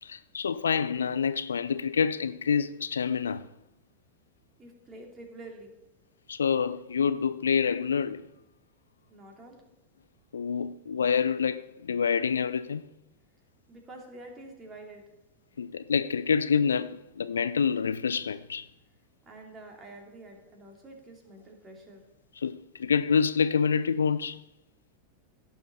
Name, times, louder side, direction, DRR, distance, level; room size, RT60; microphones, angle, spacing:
voice 1, 0.0-3.5 6.3-8.3 10.3-12.8 15.6-18.7 22.4-24.4, left 6 dB, 70° left, 0.4 m, -27 dB
voice 2, 4.6-5.7 9.1-9.6 13.7-15.0 19.2-22.0, right 2 dB, 20° right, 2.6 m, -47 dB
16.0 x 6.7 x 4.1 m
figure-of-eight pair, 90°, 0 cm